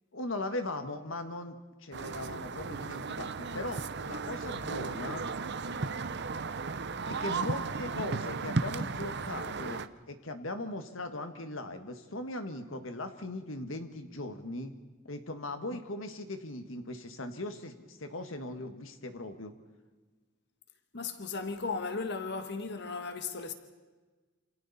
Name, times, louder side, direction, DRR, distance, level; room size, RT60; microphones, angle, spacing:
voice 1, 0.1-1.6 1.8-5.2 7.1-14.7 15.1-19.5, left 2 dB, 75° left, 1.7 m, -39 dB
sound 1, 1.9-9.9, right 4 dB, 55° right, 0.8 m, -35 dB
voice 2, 20.9-23.5, left 4 dB, 55° left, 1.6 m, -36 dB
27.5 x 27.5 x 4.2 m
head